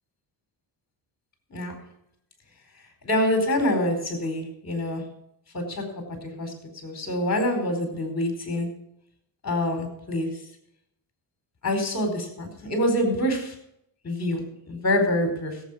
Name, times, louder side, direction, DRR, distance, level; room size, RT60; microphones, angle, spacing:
voice 1, 1.5-1.8 3.0-5.1 5.5-6.6 6.8-8.7 9.4-10.4 11.6-13.5 14.0-15.6, left 1 dB, 35° left, 4 dB, 4.6 m, -26 dB
16.0 x 8.2 x 5.6 m, 0.76 s
cardioid pair, 100°, 44 cm